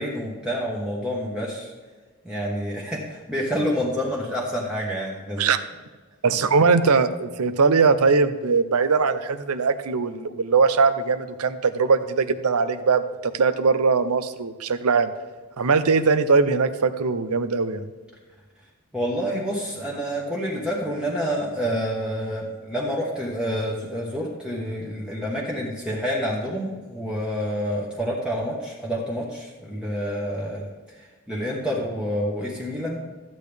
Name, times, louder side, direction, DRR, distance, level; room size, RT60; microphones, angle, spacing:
voice 1, 0.0-1.7 2.2-5.5 18.9-30.7 31.3-33.0, equal, 5° right, -4 dB, 1.2 m, -28 dB
voice 2, 6.2-15.1 15.6-17.9, right 4 dB, 85° right, 11 dB, 0.7 m, -21 dB
13.5 x 8.4 x 3.4 m, 1.4 s
head